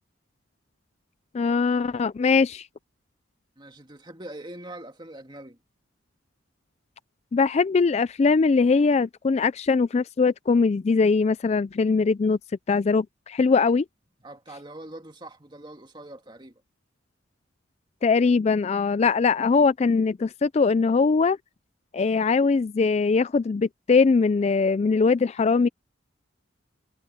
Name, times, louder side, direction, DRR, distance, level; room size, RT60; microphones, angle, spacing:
voice 1, 1.3-2.7 7.3-12.4 12.7-13.8 18.0-21.4 21.9-25.7, left 4 dB, 35° left, 0.3 m, -21 dB
voice 2, 3.6-5.6 14.2-16.6, right 1 dB, 25° right, 2.2 m, -42 dB
head